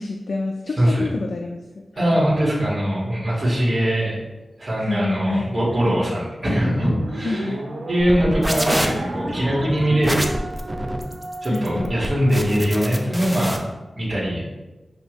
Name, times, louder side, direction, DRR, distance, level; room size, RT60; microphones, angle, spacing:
voice 1, 0.0-2.3 4.8-5.5 5.8-6.0 7.2-7.6 11.4-11.9, left 3 dB, 70° left, 2 dB, 0.3 m, -28 dB
voice 2, 0.8-1.1 2.0-4.1 4.6-7.5 7.9-10.3 11.4-13.6 14.0-14.4, equal, 35° right, -8 dB, 1.5 m, -21 dB
sound 1, 6.9-13.4, right 1 dB, 80° right, 0.6 m, -34 dB
sound 2, 8.0-13.6, equal, 5° right, 0.4 m, -27 dB
6.4 x 2.7 x 3.0 m, 1.1 s
wide cardioid pair, 115°, 0 cm